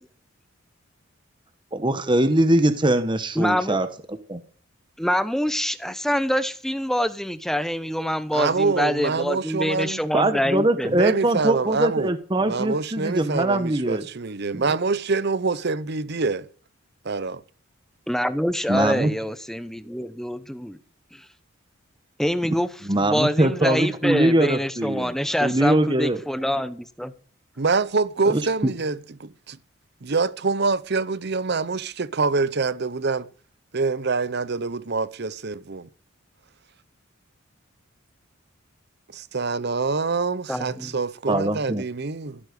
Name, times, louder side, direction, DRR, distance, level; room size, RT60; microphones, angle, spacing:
voice 1, 1.7-4.4 10.1-14.1 14.5-14.6 18.7-19.1 22.8-25.1 25.4-26.2 28.3-28.4 41.3-41.8, right 1 dB, 20° right, 1.0 m, -22 dB
voice 2, 3.4-3.8 5.0-10.9 18.1-20.8 21.1-21.2 22.2-22.7 23.0-27.1 40.5-41.0, equal, ahead, 0.8 m, -25 dB
voice 3, 8.3-10.0 10.9-12.1 12.4-16.5 17.0-17.4 27.6-29.6 30.0-33.3 33.7-35.9 39.1-42.4, right 4 dB, 55° right, 0.8 m, -25 dB
15.5 x 8.8 x 6.7 m
head